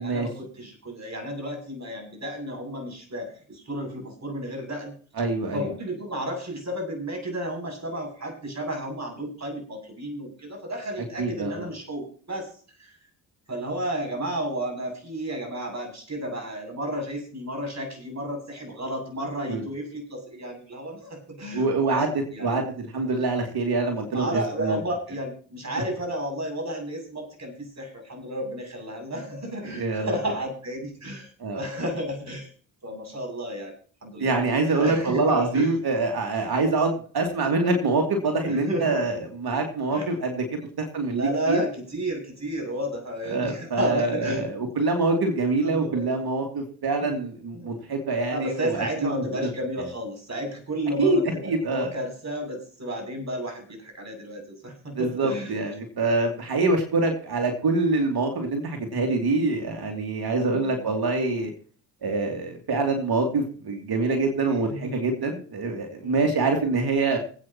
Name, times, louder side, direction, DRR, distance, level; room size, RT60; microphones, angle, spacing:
voice 1, 0.0-4.9 5.5-12.5 12.8-12.9 13.5-22.6 24.1-32.5 32.8-33.7 34.0-35.7 38.4-39.0 39.9-40.1 40.6-40.7 41.1-44.4 45.6-46.0 47.0-47.2 47.5-47.8 48.3-55.6 64.7-65.0 66.0-66.2, right 1 dB, 35° right, 3 dB, 7.8 m, -32 dB
voice 2, 5.2-5.6 11.2-11.7 19.5-19.6 21.5-22.1 22.4-24.8 29.6-30.1 31.4-31.6 34.2-40.4 40.8-41.2 41.5-41.6 43.3-49.1 49.4-49.5 51.0-51.9 54.9-61.5 62.0-67.2, right 3 dB, 50° right, 3 dB, 2.9 m, -25 dB
25.5 x 8.8 x 3.0 m, 0.44 s
hypercardioid pair, 50°, 48 cm